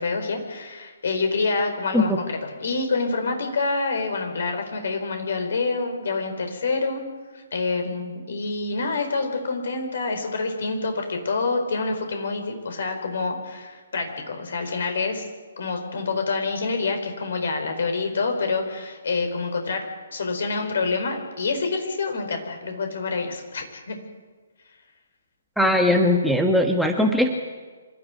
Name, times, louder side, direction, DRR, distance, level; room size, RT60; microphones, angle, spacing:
voice 1, 0.0-2.1 2.4-7.0 7.3-15.3 15.6-19.8 20.1-24.0, left 3 dB, 55° left, 5 dB, 4.5 m, -27 dB
voice 2, 25.6-27.3, left 1 dB, ahead, 2 dB, 1.4 m, -19 dB
25.5 x 13.0 x 9.5 m, 1.4 s
figure-of-eight pair, 130°, 0 cm